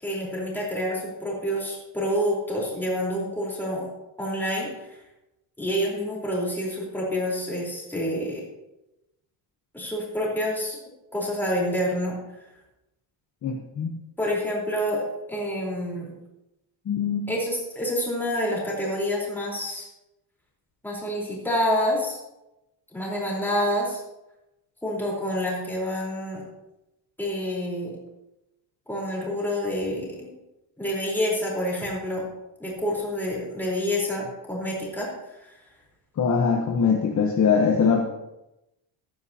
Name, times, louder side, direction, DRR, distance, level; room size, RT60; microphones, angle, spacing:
voice 1, 0.0-3.9 4.2-5.0 5.6-8.4 9.7-10.8 11.1-12.2 14.2-16.1 17.3-19.9 20.8-22.2 22.9-24.0 24.8-26.4 27.2-27.9 28.9-30.3 30.8-32.3 32.6-35.1 35.4-35.5, equal, 5° left, -4 dB, 4.0 m, -28 dB
voice 2, 13.4-13.9 16.9-17.3 36.2-38.0, left 6 dB, 35° left, 1 dB, 1.1 m, -22 dB
15.5 x 12.0 x 2.9 m, 0.92 s
cardioid pair, 165°, 47 cm